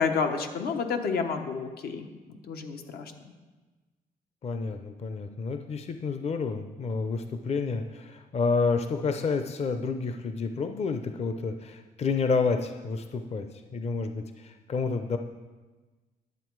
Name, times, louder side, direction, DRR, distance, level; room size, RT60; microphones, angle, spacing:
voice 1, 0.0-3.1, left 5 dB, 80° left, 5 dB, 1.1 m, -30 dB
voice 2, 4.4-15.2, left 4 dB, 40° left, 7 dB, 0.6 m, -29 dB
10.5 x 7.3 x 4.6 m, 1.3 s
cardioid pair, 100°, 16 cm